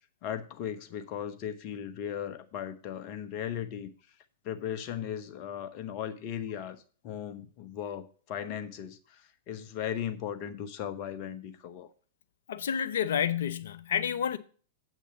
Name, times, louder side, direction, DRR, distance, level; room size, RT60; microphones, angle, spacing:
voice 1, 0.2-3.9 4.4-6.8 7.0-11.9, left 9 dB, 40° left, 1.2 m, -37 dB
voice 2, 12.5-14.4, left 8 dB, 60° left, 0.8 m, -29 dB
8.1 x 6.2 x 6.9 m
figure-of-eight pair, 100°, 0 cm